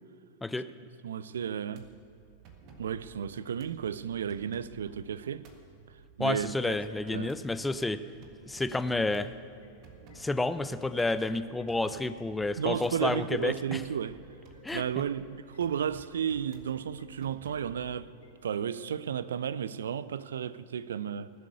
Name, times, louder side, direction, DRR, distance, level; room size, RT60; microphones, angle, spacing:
voice 1, 1.0-1.9 2.8-5.5 6.2-6.8 7.1-7.3 12.6-14.2 14.7-18.1 18.4-21.3, right 8 dB, 65° right, 0.4 m, -33 dB
sound 1, 1.7-18.0, right 4 dB, 40° right, 1.7 m, -55 dB
voice 2, 6.2-8.0 8.5-9.3 10.2-13.8 14.6-15.0, left 2 dB, 10° left, 0.5 m, -30 dB
sound 2, 7.6-19.2, left 2 dB, 70° left, 2.8 m, -59 dB
18.5 x 7.7 x 8.1 m
figure-of-eight pair, 90°, 0 cm